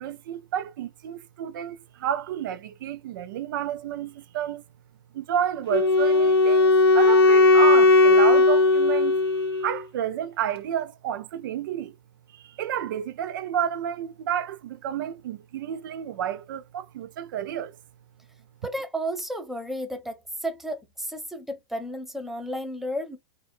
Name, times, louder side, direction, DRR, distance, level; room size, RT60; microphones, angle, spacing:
voice 1, 0.0-4.6 5.1-9.2 9.6-12.0 12.3-17.8, right 10 dB, 50° right, 0.4 m, -30 dB
Wind instrument woodwind instrument, 5.7-9.8, left 3 dB, 65° left, 0.6 m, -17 dB
voice 2, 18.6-23.2, equal, ahead, 0.6 m, -32 dB
3.4 x 2.3 x 2.2 m
figure-of-eight pair, 110°, 14 cm